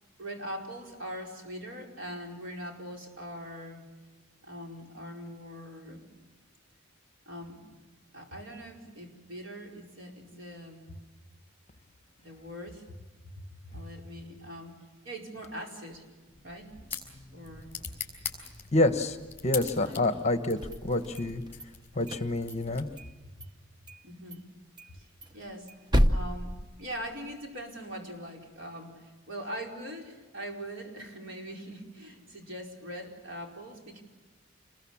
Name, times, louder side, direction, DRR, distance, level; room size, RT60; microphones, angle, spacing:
voice 1, 0.2-3.8 4.4-6.1 7.2-7.8 8.1-10.9 12.2-13.0 13.2-14.7 15.0-16.0 16.4-16.7 17.3-17.8 19.8-20.2 23.4-23.5 24.0-24.4 24.9-25.7 26.1-34.0, equal, 60° right, 1 dB, 4.9 m, -42 dB
sound 1, 16.3-23.2, left 6 dB, 10° left, 5.2 m, -43 dB
voice 2, 18.7-19.2 19.4-21.4 21.9-22.8, left 2 dB, 30° left, 8 dB, 1.3 m, -27 dB
sound 2, 20.5-21.7 22.0-23.1 23.4-23.5 23.9-24.0 24.3-24.4 24.8-27.4, equal, 20° right, 0.9 m, -30 dB
28.0 x 21.5 x 7.3 m, 1.3 s
head